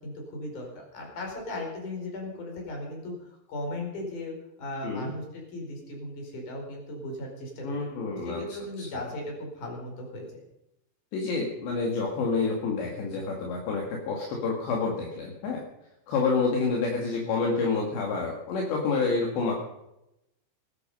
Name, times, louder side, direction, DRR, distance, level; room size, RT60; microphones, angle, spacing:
voice 1, 0.0-7.9 8.3-10.4, left 1 dB, 40° left, 0 dB, 5.8 m, -37 dB
voice 2, 7.6-8.4 8.8-8.9 11.1-15.6 16.1-19.5, left 4 dB, 65° left, 0 dB, 4.2 m, -28 dB
19.0 x 13.0 x 5.5 m, 0.87 s
omnidirectional pair, 5.6 m